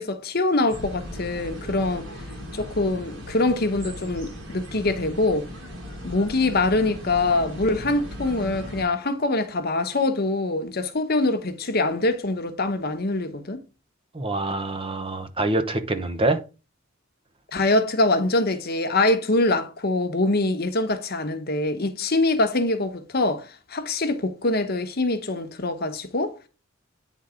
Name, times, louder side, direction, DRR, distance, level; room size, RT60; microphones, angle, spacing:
voice 1, 0.0-2.1 2.5-5.5 6.0-13.6 17.5-26.3, left 2 dB, 50° left, 1.0 m, -24 dB
sound 1, 0.7-8.8, equal, 60° right, 5.4 m, -37 dB
voice 2, 14.1-16.4, right 2 dB, 25° right, 0.8 m, -25 dB
9.4 x 4.0 x 5.0 m
head